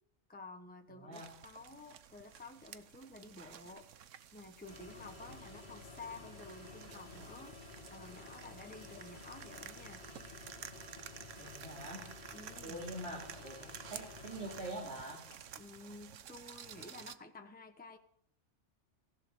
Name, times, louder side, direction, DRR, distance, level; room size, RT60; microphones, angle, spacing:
voice 1, 0.3-3.9 4.3-7.6 7.9-10.0 12.3-12.9 15.6-18.0, left 3 dB, 10° left, 5 dB, 1.1 m, -52 dB
voice 2, 0.9-1.2 5.2-5.3 11.4-12.2 12.6-15.2, right 1 dB, 60° right, -3 dB, 2.9 m, -45 dB
sound 1, 1.1-17.2, right 9 dB, 85° right, 1.2 m, -52 dB
sound 2, 4.7-15.8, left 4 dB, 60° left, 2.0 m, -53 dB
16.0 x 11.5 x 6.5 m, 0.66 s
omnidirectional pair, 1.2 m